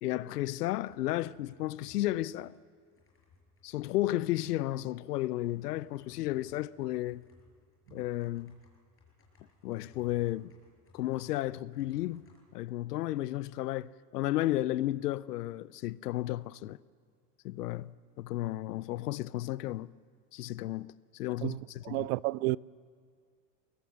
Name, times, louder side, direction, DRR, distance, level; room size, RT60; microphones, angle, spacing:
voice 1, 0.0-2.5 3.6-7.3 7.9-8.6 9.6-10.5 10.9-12.2 12.5-16.8 17.4-19.9 20.3-22.1, left 15 dB, 85° left, 0.7 m, -33 dB
sound 1, 0.8-12.4, left 4 dB, 30° left, 6.3 m, -64 dB
voice 2, 21.4-22.6, right 21 dB, 65° right, 0.5 m, -31 dB
22.0 x 20.0 x 7.5 m
hypercardioid pair, 105°, 46 cm